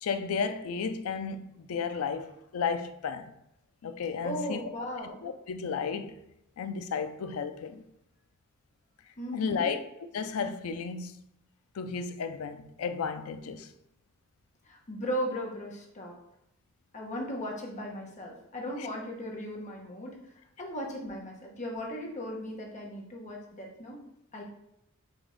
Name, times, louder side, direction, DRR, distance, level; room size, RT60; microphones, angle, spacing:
voice 1, 0.0-3.3 3.8-4.6 5.2-6.1 6.6-7.8 9.3-9.8 10.1-11.2 11.7-13.7, left 5 dB, 75° left, 0.4 m, -33 dB
voice 2, 4.2-5.2 9.2-9.7 14.6-16.2 16.9-20.3 20.6-24.0 24.3-24.4, equal, 35° left, 1.0 m, -37 dB
5.1 x 2.6 x 3.9 m
head